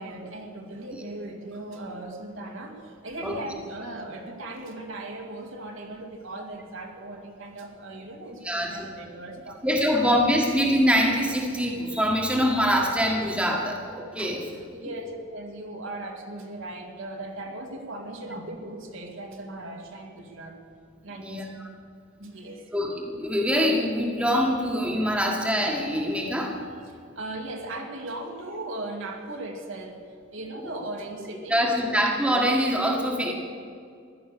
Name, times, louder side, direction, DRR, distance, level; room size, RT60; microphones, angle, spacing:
voice 1, 0.0-9.7 10.0-10.1 14.2-20.5 21.0-21.4 22.2-22.7 26.9-30.0 30.3-32.0, right 2 dB, 70° right, 1 dB, 2.2 m, -38 dB
voice 2, 8.4-8.8 9.6-14.4 21.2-21.5 22.7-26.5 31.5-33.3, equal, 5° right, -1 dB, 1.6 m, -24 dB
15.5 x 11.5 x 6.8 m, 2.3 s
head